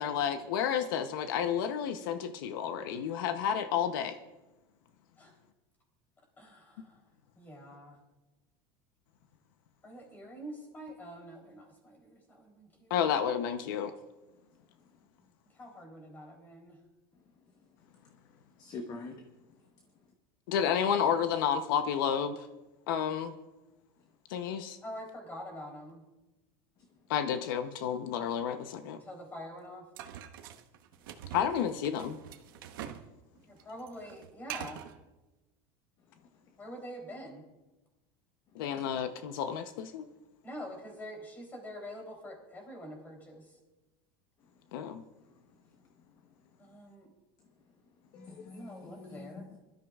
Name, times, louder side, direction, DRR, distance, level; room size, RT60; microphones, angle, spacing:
voice 1, 0.0-4.2 12.9-13.9 20.5-22.5 22.9-23.3 24.3-24.8 27.1-29.0 31.3-32.2 38.5-40.1 44.7-45.0, left 8 dB, 80° left, 9 dB, 0.8 m, -31 dB
voice 2, 6.4-7.0 7.4-8.0 9.8-12.9 15.5-16.8 24.8-26.0 29.0-29.9 33.5-34.8 36.6-37.4 40.4-43.5 46.6-47.1 48.5-49.4, equal, 15° left, 1 dB, 3.4 m, -45 dB
voice 3, 18.6-19.3 27.4-27.5 38.8-38.9 45.2-45.3 48.1-49.6, left 3 dB, 35° left, 4 dB, 1.1 m, -45 dB
sound 1, 30.0-33.1 33.4-35.0, right 10 dB, 90° right, 1.1 m, -44 dB
23.0 x 13.0 x 2.4 m, 1.1 s
supercardioid pair, 165°, 11 cm